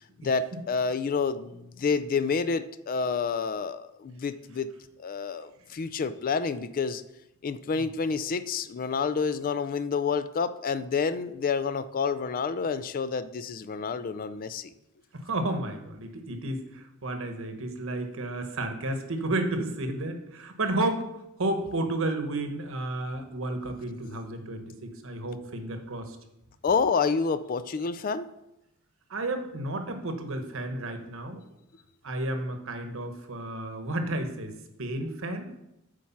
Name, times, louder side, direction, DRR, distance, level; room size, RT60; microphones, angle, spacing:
voice 1, 0.2-4.7 5.0-7.0 7.4-14.7 24.0-24.1 26.6-28.3, left 5 dB, 40° left, 13 dB, 0.3 m, -29 dB
voice 2, 15.1-21.1 21.4-26.2 29.1-31.4 32.0-35.5, right 2 dB, 65° right, 6 dB, 1.1 m, -32 dB
8.6 x 4.7 x 5.7 m, 0.87 s
head